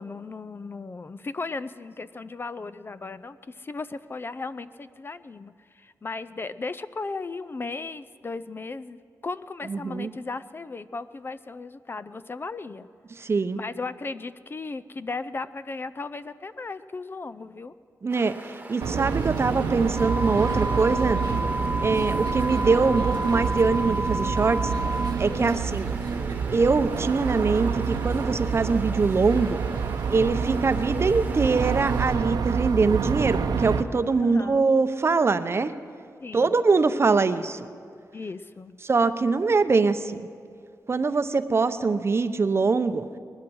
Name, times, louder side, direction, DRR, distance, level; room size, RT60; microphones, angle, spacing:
voice 1, 0.0-9.0 9.2-12.9 13.5-17.7 21.9-22.3 25.4-25.7 34.2-34.7 36.2-36.5 38.1-38.8, left 3 dB, 35° left, 14 dB, 0.4 m, -36 dB
voice 2, 9.7-10.1 13.2-13.6 18.0-21.2 21.8-24.7 25.2-26.0 26.5-29.6 30.1-35.7 36.3-37.7 38.8-40.3 40.9-43.1, right 4 dB, 40° right, 11 dB, 0.7 m, -23 dB
sound 1, 18.1-32.2, right 2 dB, 25° right, 1.3 m, -42 dB
sound 2, 18.8-33.8, right 6 dB, 85° right, 0.8 m, -28 dB
sound 3, 20.0-25.1, right 1 dB, ahead, 0.9 m, -30 dB
19.5 x 12.0 x 6.2 m, 2.2 s
wide cardioid pair, 90°, 7 cm